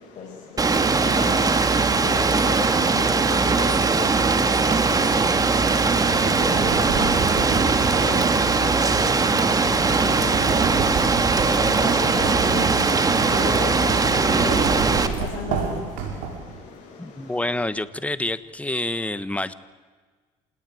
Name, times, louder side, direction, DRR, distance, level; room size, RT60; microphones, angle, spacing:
voice 1, 0.0-17.8 18.9-19.1, left 5 dB, 55° left, 5.9 m, -36 dB
Rain, 0.6-15.1, right 4 dB, 25° right, 2.2 m, -20 dB
sound 1, 5.6-16.6, right 5 dB, 80° right, 6.0 m, -30 dB
voice 2, 17.0-19.5, left 2 dB, 10° left, 1.3 m, -27 dB
27.0 x 19.5 x 9.4 m
supercardioid pair, 90°, 14 cm